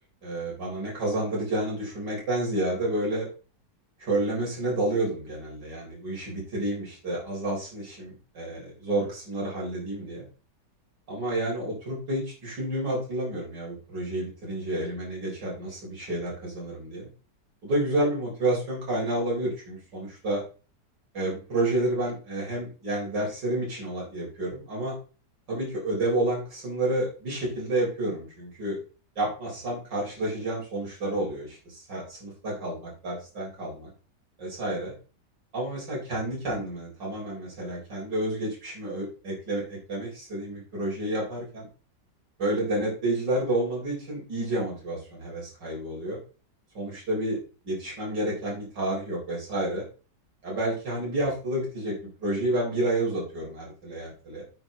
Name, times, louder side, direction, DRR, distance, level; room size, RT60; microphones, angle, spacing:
voice 1, 0.2-3.3 4.0-10.3 11.1-17.1 17.6-20.4 21.1-25.0 25.5-28.8 29.2-33.9 34.4-34.9 35.5-41.7 42.4-46.2 46.7-47.4 47.6-49.8 50.4-51.9 52.2-54.4, right 1 dB, 75° right, -4 dB, 4.5 m, -30 dB
9.5 x 8.3 x 3.7 m, 0.36 s
omnidirectional pair, 1.9 m